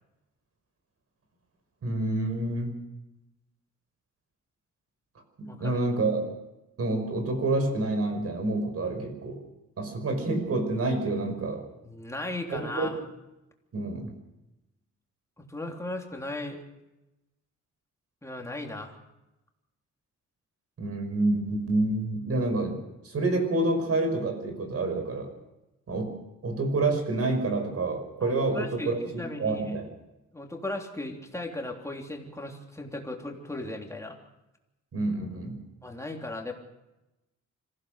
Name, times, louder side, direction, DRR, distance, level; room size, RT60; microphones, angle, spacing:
voice 1, 1.8-2.8 5.4-6.3 6.8-9.4 9.8-11.6 12.5-12.9 13.7-14.1 20.8-25.3 25.9-26.2 26.4-29.9 34.9-35.6, right 2 dB, 50° right, 6 dB, 5.5 m, -28 dB
voice 2, 5.4-5.8 11.8-13.0 15.4-16.6 18.2-18.9 28.2-29.7 30.3-34.2 35.8-36.5, left 2 dB, 10° left, 1 dB, 3.3 m, -37 dB
26.0 x 16.0 x 6.6 m, 0.95 s
cardioid pair, 125°, 30 cm